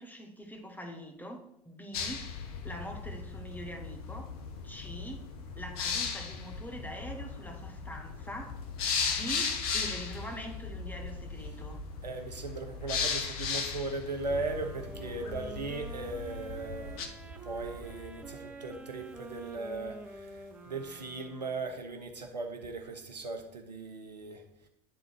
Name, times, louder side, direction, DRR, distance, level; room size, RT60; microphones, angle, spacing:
voice 1, 0.0-2.3 2.6-4.3 4.6-5.3 5.6-8.6 9.1-11.8 14.9-15.4, equal, 10° left, 3 dB, 1.4 m, -44 dB
sound 1, 1.9-17.1, left 5 dB, 65° left, 1.0 m, -37 dB
voice 2, 12.0-17.1 17.4-20.3 20.7-24.4, right 3 dB, 85° right, 5 dB, 0.9 m, -38 dB
Fire, 14.1-21.4 21.7-21.8, right 2 dB, 60° right, 1.1 m, -53 dB
sound 2, 14.3-22.0, right 2 dB, 5° right, 1.0 m, -47 dB
10.0 x 3.8 x 4.6 m, 0.77 s
figure-of-eight pair, 75°, 21 cm